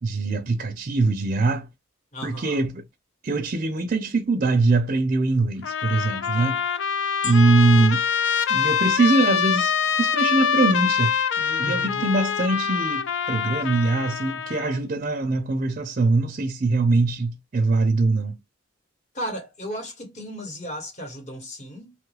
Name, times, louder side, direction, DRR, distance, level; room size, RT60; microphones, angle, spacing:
voice 1, 0.0-1.7 2.2-2.8 3.2-6.6 7.2-8.0 8.5-18.4, right 3 dB, 40° right, 0.5 m, -22 dB
voice 2, 2.1-2.6 6.3-6.6 11.6-12.1 19.1-21.9, equal, 35° left, 1.1 m, -35 dB
Trumpet, 5.6-14.8, left 7 dB, 65° left, 0.4 m, -25 dB
sound 1, 7.2-9.6 10.3-10.4, left 6 dB, 85° left, 0.9 m, -40 dB
3.0 x 2.3 x 3.2 m
head